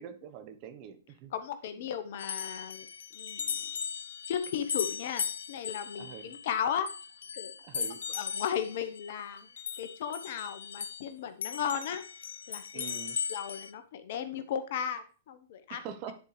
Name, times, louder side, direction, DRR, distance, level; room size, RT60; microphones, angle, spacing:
voice 1, 0.0-1.3 6.0-6.3 7.6-8.0 12.7-13.2 15.7-16.1, right 8 dB, 45° right, 8 dB, 1.1 m, -44 dB
voice 2, 1.3-2.9 3.1-3.6 4.3-6.9 7.4-7.5 8.1-9.5 9.8-12.0 12.5-12.8 13.3-15.8, left 8 dB, 60° left, 10 dB, 1.0 m, -35 dB
sound 1, 2.2-11.1 11.4-13.7, left 7 dB, 80° left, 0.5 m, -38 dB
10.5 x 4.5 x 3.3 m, 0.38 s
hypercardioid pair, 115°, 0 cm